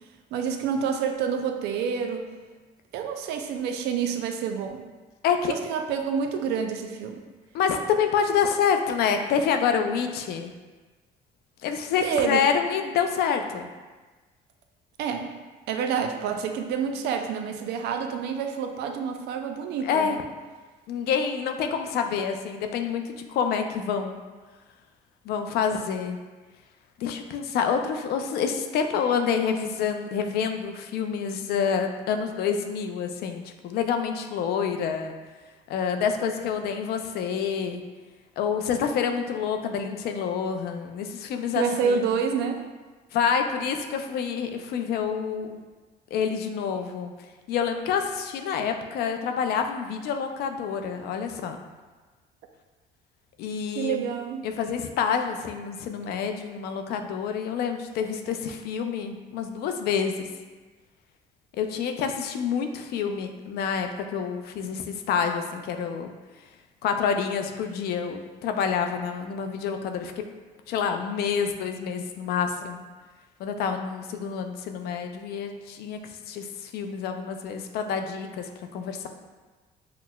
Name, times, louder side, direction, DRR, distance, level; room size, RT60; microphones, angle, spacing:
voice 1, 0.3-2.3 2.9-4.9 5.5-7.2 12.0-12.5 15.0-15.3 15.7-20.2 41.6-42.6 53.8-54.4, right 6 dB, 80° right, 5 dB, 0.4 m, -28 dB
voice 2, 5.2-5.5 7.5-10.5 11.6-13.7 19.8-20.2 20.9-24.2 25.3-26.2 27.0-35.1 35.7-37.8 38.4-42.1 43.1-45.6 46.1-47.1 47.5-51.6 53.4-54.1 54.4-60.3 61.6-66.1 66.8-70.2 70.7-72.8 73.4-76.0 76.3-79.1, left 7 dB, 70° left, 6 dB, 0.4 m, -27 dB
5.7 x 2.0 x 2.2 m, 1.3 s
cardioid pair, 110°, 17 cm